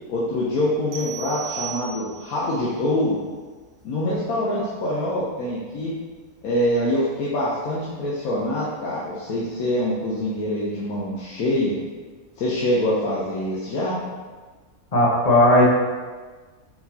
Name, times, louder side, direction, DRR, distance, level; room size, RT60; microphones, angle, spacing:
voice 1, 0.1-3.2 3.8-6.0 6.4-11.7 12.4-14.0, left 1 dB, 70° left, -6 dB, 1.1 m, -25 dB
sound 1, 0.9-2.5, right 9 dB, 70° right, 1.0 m, -35 dB
voice 2, 14.9-15.6, left 1 dB, 30° left, -5 dB, 0.9 m, -16 dB
4.6 x 3.9 x 2.7 m, 1.4 s
omnidirectional pair, 1.6 m